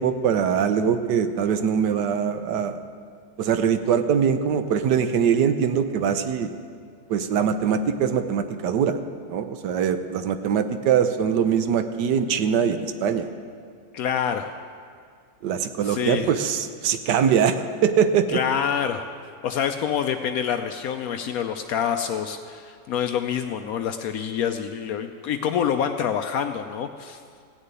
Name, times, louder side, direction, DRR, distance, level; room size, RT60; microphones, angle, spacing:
voice 1, 0.0-2.8 3.4-6.5 7.1-9.0 9.3-13.3 15.4-18.4, right 7 dB, 65° right, 9 dB, 1.2 m, -22 dB
voice 2, 13.9-14.6 15.9-16.3 18.3-19.1 19.4-27.2, left 8 dB, 90° left, 7 dB, 0.7 m, -26 dB
15.5 x 6.7 x 9.1 m, 2.2 s
omnidirectional pair, 2.1 m